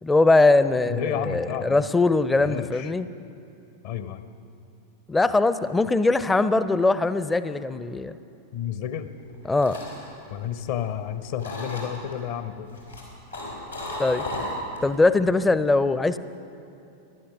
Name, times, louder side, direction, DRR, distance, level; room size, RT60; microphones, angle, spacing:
voice 1, 0.0-3.1 5.1-8.2 9.5-9.8 14.0-14.2 14.8-16.2, left 3 dB, 10° left, 14 dB, 0.5 m, -21 dB
voice 2, 0.9-2.0 2.4-2.9 3.8-4.2 8.5-9.1 10.3-12.7, left 9 dB, 50° left, 11 dB, 0.8 m, -31 dB
sound 1, 9.2-11.0 11.4-12.1 12.7-14.9 15.3-15.6, left 1 dB, 85° left, 4.1 m, -35 dB
17.0 x 11.5 x 6.0 m, 2.7 s
figure-of-eight pair, 90°, 0 cm